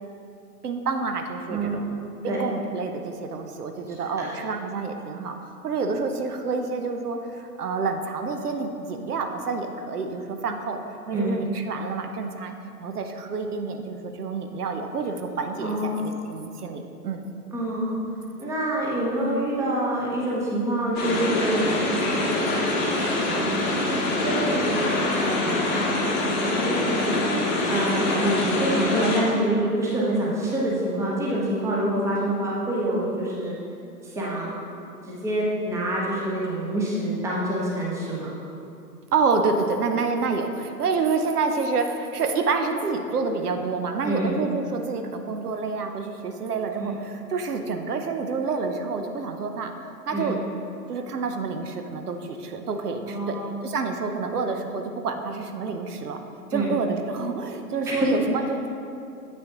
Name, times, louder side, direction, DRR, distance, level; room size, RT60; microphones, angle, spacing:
voice 1, 0.6-1.8 2.2-10.8 11.1-12.5 12.8-17.3 39.1-50.4 50.9-53.4 53.6-56.2 56.5-58.7, right 4 dB, 70° right, 5 dB, 0.7 m, -28 dB
voice 2, 1.5-1.9 2.3-2.4 3.9-4.0 4.3-4.4 11.1-11.3 15.6-16.1 17.5-18.0 18.4-22.6 23.3-23.7 24.2-26.0 26.4-27.2 27.7-33.5 34.0-38.3 44.0-44.4 46.8-46.9 50.1-50.3 53.0-53.6 56.5-56.7 57.9-58.1, right 1 dB, 5° right, -5 dB, 0.9 m, -27 dB
sound 1, 20.9-29.2, left 2 dB, 20° left, 1.0 m, -24 dB
8.0 x 6.2 x 2.9 m, 2.5 s
figure-of-eight pair, 115°, 47 cm